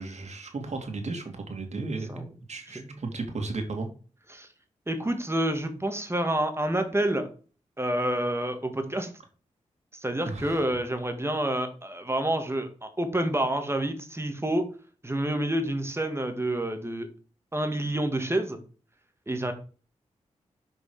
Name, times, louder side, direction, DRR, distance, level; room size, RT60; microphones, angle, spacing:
voice 1, 0.0-3.9 10.2-10.6, right 3 dB, 60° right, 3 dB, 2.4 m, -34 dB
voice 2, 4.9-7.3 7.8-9.1 9.9-14.7 15.0-17.1 17.5-18.6 19.3-19.5, right 1 dB, 20° right, 6 dB, 2.0 m, -28 dB
6.4 x 5.2 x 4.9 m, 0.37 s
cardioid pair, 45°, 13 cm